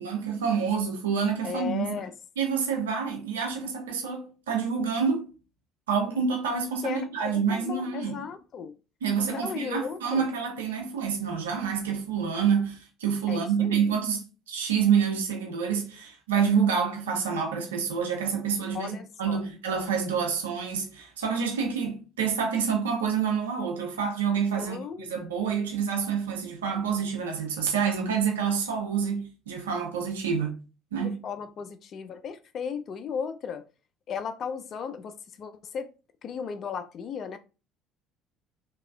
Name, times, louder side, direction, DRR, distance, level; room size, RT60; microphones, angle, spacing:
voice 1, 0.0-2.0 2.4-5.3 5.9-8.2 9.0-30.6 30.9-31.2, right 6 dB, 75° right, 0.5 m, -27 dB
voice 2, 1.4-2.1 6.8-8.7 9.3-10.3 13.3-13.9 18.7-19.5 24.5-25.1 31.0-33.6 34.1-35.9 36.2-37.4, left 6 dB, 45° left, 0.3 m, -36 dB
2.9 x 2.2 x 2.3 m
figure-of-eight pair, 55°, 0 cm